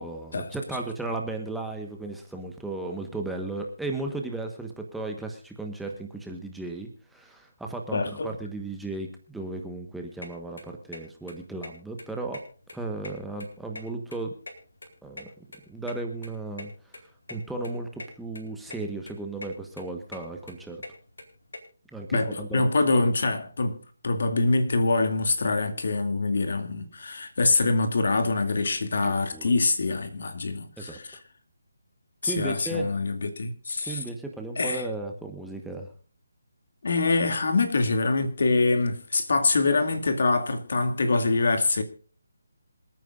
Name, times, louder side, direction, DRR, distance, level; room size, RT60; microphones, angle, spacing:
voice 1, 0.0-12.4 12.7-14.3 15.0-15.3 15.7-16.7 17.3-20.8 21.9-22.7 29.0-29.5 30.8-31.0 32.2-32.9 33.8-35.9, right 2 dB, ahead, 1.2 m, -35 dB
voice 2, 7.9-8.3 22.1-23.8 24.0-31.2 32.2-34.0 34.6-34.9 36.8-41.8, left 3 dB, 60° left, 2.5 m, -25 dB
sound 1, 10.2-10.3 10.6-11.0 11.3-11.4 11.6-11.7 12.0-12.7 13.0-14.2 14.5-16.0 16.2-16.3 16.6-16.7 16.9-17.0 17.3-17.4 17.6-18.1 18.3-18.8 19.0-19.5 19.8-21.6, left 2 dB, 85° left, 4.3 m, -41 dB
27.0 x 9.2 x 2.5 m
hypercardioid pair, 165°, 0 cm